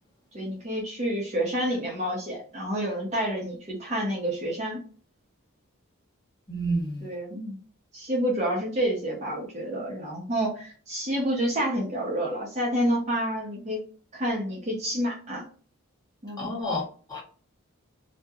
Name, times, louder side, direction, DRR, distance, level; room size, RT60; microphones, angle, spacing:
voice 1, 0.3-4.8 7.0-7.6 7.9-13.8 14.1-15.5 16.2-16.5, equal, 30° right, 0.6 m, -29 dB
voice 2, 6.5-7.1 16.4-16.8 17.1-17.2, right 1 dB, 15° left, 1.0 m, -29 dB
2.3 x 2.1 x 2.7 m
head